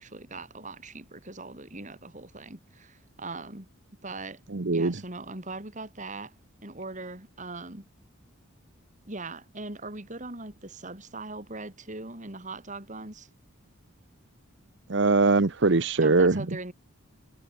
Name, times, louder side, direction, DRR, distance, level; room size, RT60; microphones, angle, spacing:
voice 1, 0.0-3.7 4.0-4.4 4.7-6.4 6.6-7.9 9.1-13.3 16.0-16.7, right 3 dB, 35° right, 3.5 m, -40 dB
voice 2, 4.5-4.9 14.9-16.4, right 3 dB, 60° right, 0.9 m, -21 dB
head